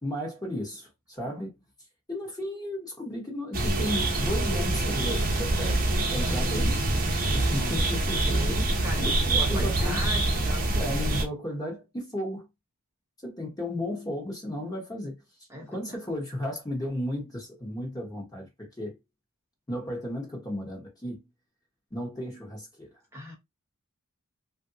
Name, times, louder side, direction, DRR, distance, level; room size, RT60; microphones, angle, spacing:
voice 1, 0.0-1.6 2.1-6.8 7.3-8.6 8.9-10.0 10.7-12.5 13.2-15.2 15.7-19.0 19.7-21.2 21.9-22.9, left 1 dB, 15° left, 1.1 m, -34 dB
sound 1, 3.5-11.2, right 2 dB, 40° right, 0.8 m, -25 dB
voice 2, 7.2-7.8 8.2-10.7 15.5-15.8 23.1-23.3, equal, 15° right, 0.9 m, -38 dB
3.2 x 2.6 x 2.7 m
head